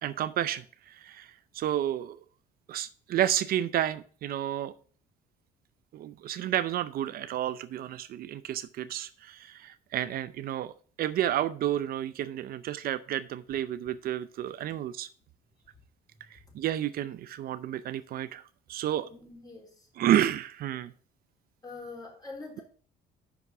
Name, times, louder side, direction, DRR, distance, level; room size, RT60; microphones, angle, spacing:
voice 1, 0.0-2.2 2.7-4.7 5.9-10.7 11.0-15.1 16.3-18.4 18.7-19.1 20.0-20.9, right 11 dB, 60° right, 13 dB, 0.5 m, -31 dB
voice 2, 19.0-19.9 21.6-22.6, left 3 dB, 20° left, -1 dB, 4.0 m, -44 dB
6.0 x 5.8 x 6.8 m, 0.43 s
cardioid pair, 110°, 17 cm